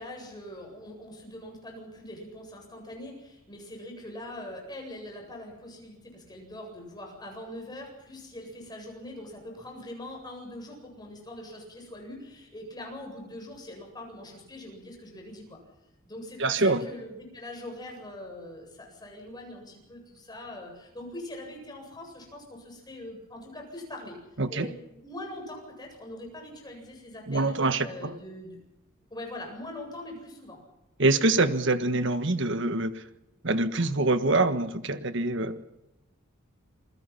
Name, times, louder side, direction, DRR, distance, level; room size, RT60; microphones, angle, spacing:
voice 1, 0.0-15.6 16.1-24.2 24.5-27.5 27.8-28.6 29.1-30.6, left 1 dB, 20° left, 1 dB, 7.9 m, -42 dB
voice 2, 16.4-16.9 24.4-24.7 27.3-28.1 31.0-33.0 33.4-35.7, right 2 dB, 60° right, 10 dB, 1.5 m, -25 dB
28.0 x 21.5 x 5.8 m, 0.94 s
head